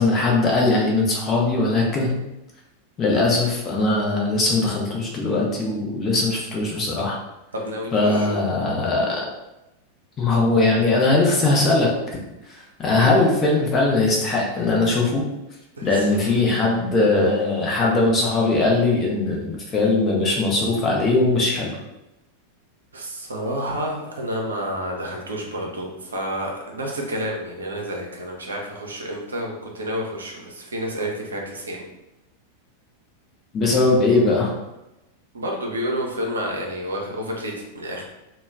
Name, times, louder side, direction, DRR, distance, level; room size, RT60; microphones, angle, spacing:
voice 1, 0.0-2.1 3.0-7.2 7.9-9.3 10.2-11.9 12.5-15.2 15.8-21.8 33.5-34.5, left 2 dB, 25° left, -2 dB, 0.6 m, -20 dB
voice 2, 7.5-8.4 15.8-16.3 22.9-31.9 35.3-38.0, equal, 70° right, 0 dB, 0.5 m, -29 dB
2.2 x 2.1 x 3.3 m, 0.95 s
figure-of-eight pair, 90°, 0 cm